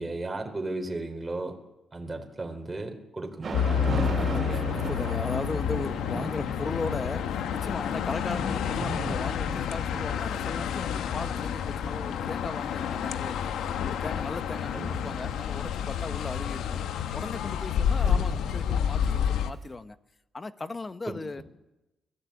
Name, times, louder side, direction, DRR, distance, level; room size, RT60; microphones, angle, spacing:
voice 1, 0.0-1.6 1.9-4.8 14.7-15.0 18.0-18.4 21.1-21.4, right 2 dB, 20° right, 3.8 m, -36 dB
Thunder / Rain, 3.4-19.4, right 2 dB, 45° right, 3.7 m, -40 dB
sound 1, 3.5-19.5, left 8 dB, 80° left, 1.1 m, -29 dB
voice 2, 3.9-13.5 13.8-16.8 17.1-20.0 20.3-21.4, left 3 dB, 25° left, 1.0 m, -37 dB
21.5 x 15.0 x 8.5 m
cardioid pair, 90°, 0 cm